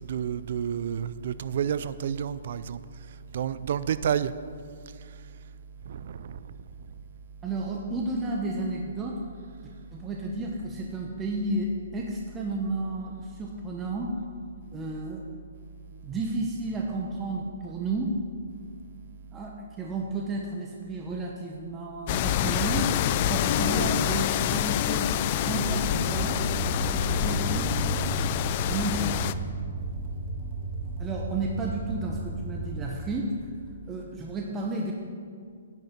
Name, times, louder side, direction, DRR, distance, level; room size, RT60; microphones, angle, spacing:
voice 1, 0.0-2.8 3.3-4.3 5.9-6.4, right 8 dB, 55° right, 15 dB, 0.5 m, -30 dB
voice 2, 7.4-9.2 9.9-14.1 14.7-15.2 16.0-18.1 19.3-22.9 23.3-25.1 25.4-26.4 27.1-28.0 28.7-29.3 31.0-33.3 33.9-34.9, right 2 dB, 15° right, -1 dB, 0.9 m, -32 dB
sound 1, 22.1-29.3, left 11 dB, 40° left, 0.4 m, -27 dB
Guitar, 22.6-32.1, left 2 dB, 65° left, 3.1 m, -36 dB
sound 2, 25.6-32.9, right 2 dB, 35° right, 1.8 m, -35 dB
10.0 x 6.6 x 8.6 m, 2.1 s
hypercardioid pair, 150°, 0 cm